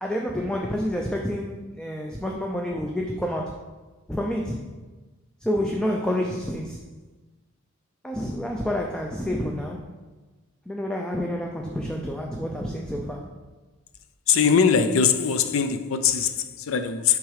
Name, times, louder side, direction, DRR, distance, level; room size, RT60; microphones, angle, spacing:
voice 1, 0.0-3.5 4.1-4.6 5.4-6.8 8.0-9.9 10.7-13.3, equal, 5° left, 0.4 m, -28 dB
voice 2, 14.3-17.2, left 6 dB, 80° left, 0.5 m, -21 dB
6.2 x 3.7 x 4.9 m
head